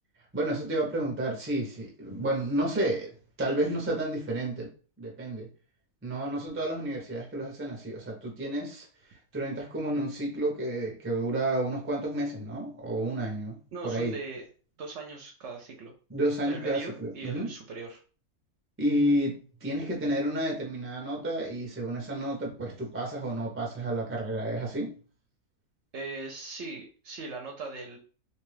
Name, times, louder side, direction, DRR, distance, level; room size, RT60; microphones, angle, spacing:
voice 1, 0.3-3.1 3.4-4.7 5.0-5.5 6.0-8.9 9.3-13.6 13.8-14.1 16.1-17.5 18.8-25.0, right 1 dB, 15° right, 0.4 m, -30 dB
voice 2, 13.7-14.5 14.8-15.9 16.5-18.0 25.9-28.0, right 3 dB, 65° right, 0.8 m, -39 dB
2.6 x 2.3 x 3.2 m
omnidirectional pair, 1.5 m